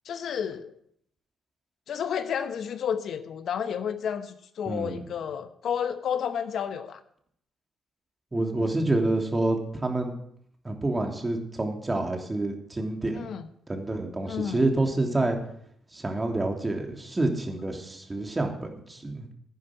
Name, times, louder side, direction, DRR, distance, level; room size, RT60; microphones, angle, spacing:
voice 1, 0.0-0.7 1.9-7.0 13.1-13.5 14.2-14.6, left 8 dB, 65° left, 10 dB, 1.0 m, -31 dB
voice 2, 4.7-5.0 8.3-10.1 10.6-13.3 13.7-15.4 15.9-19.3, right 2 dB, 25° right, 2 dB, 3.0 m, -28 dB
11.5 x 9.6 x 6.1 m, 0.68 s
hypercardioid pair, 50°, 0 cm